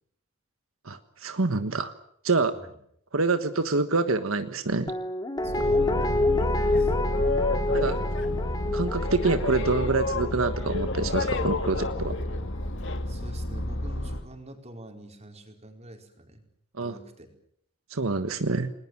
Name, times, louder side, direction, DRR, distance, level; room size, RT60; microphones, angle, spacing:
voice 1, 0.8-1.9 2.2-2.5 3.1-4.9 7.7-8.0 8.7-12.1 16.8-16.9 17.9-18.7, right 3 dB, 85° right, 9 dB, 1.4 m, -26 dB
Guitar, 4.9-11.9 12.2-12.3, left 2 dB, 20° left, 2.3 m, -29 dB
Boat Water vehicle, 5.4-14.2, left 1 dB, 65° left, 2.2 m, -29 dB
voice 2, 5.4-6.9 13.1-16.4 16.8-17.3, right 1 dB, 35° right, 3 dB, 4.7 m, -46 dB
29.5 x 20.5 x 7.5 m, 0.70 s
head